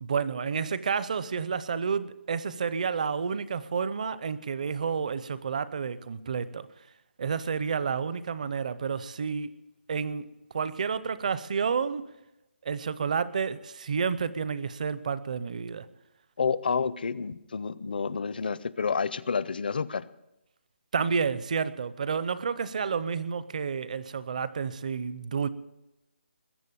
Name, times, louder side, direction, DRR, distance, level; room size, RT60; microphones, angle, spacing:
voice 1, 0.0-6.7 7.2-9.5 9.9-10.2 10.5-12.0 12.6-15.9 20.9-25.5, right 6 dB, 40° right, 0.7 m, -30 dB
voice 2, 16.4-20.1, left 5 dB, 50° left, 0.6 m, -29 dB
21.0 x 8.0 x 7.0 m
hypercardioid pair, 170°, 6 cm